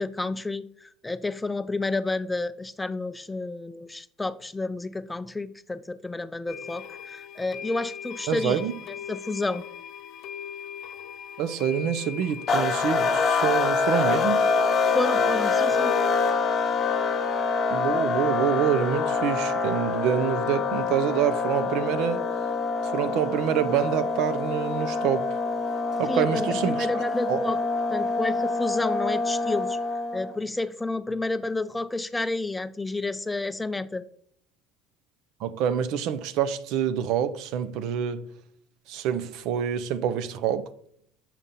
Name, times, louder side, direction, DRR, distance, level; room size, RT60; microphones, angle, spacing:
voice 1, 0.0-8.6 9.1-9.6 14.9-16.0 26.1-27.6 27.9-34.0, left 2 dB, 10° left, 0.3 m, -30 dB
sound 1, 6.5-16.1, left 8 dB, 65° left, 0.7 m, -39 dB
voice 2, 8.3-8.7 11.4-14.4 17.7-22.2 22.8-25.3 26.0-26.9 27.3-27.4 35.4-38.3 38.9-40.7, right 9 dB, 65° right, 0.5 m, -26 dB
sound 2, 12.5-30.3, left 4 dB, 35° left, 1.2 m, -26 dB
7.2 x 3.7 x 4.1 m
supercardioid pair, 110°, 0 cm